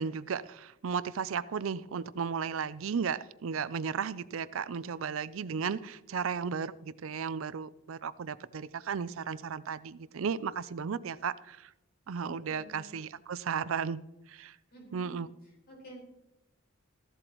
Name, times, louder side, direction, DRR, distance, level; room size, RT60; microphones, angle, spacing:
voice 1, 0.0-11.7 12.1-14.6 14.9-15.3, right 6 dB, 75° right, 17 dB, 0.5 m, -35 dB
voice 2, 12.2-12.9 14.7-15.2 15.7-16.0, right 1 dB, 50° left, -2 dB, 4.6 m, -50 dB
15.0 x 11.5 x 3.0 m, 0.94 s
head